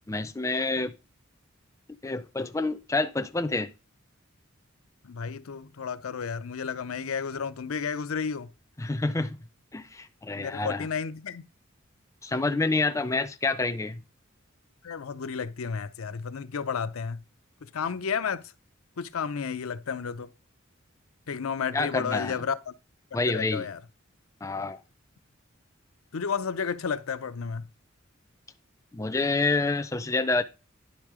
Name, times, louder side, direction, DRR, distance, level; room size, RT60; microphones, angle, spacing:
voice 1, 0.1-0.9 2.0-3.7 8.8-9.4 9.7-10.9 12.2-14.0 21.7-22.4 23.1-23.7 24.4-24.8 28.9-30.4, left 3 dB, 15° left, 0.4 m, -28 dB
voice 2, 5.0-8.5 10.4-11.4 14.8-17.2 17.6-18.4 19.0-20.3 21.3-22.7 23.3-23.8 26.1-27.7, left 6 dB, 90° left, 0.6 m, -32 dB
10.0 x 3.6 x 4.8 m
head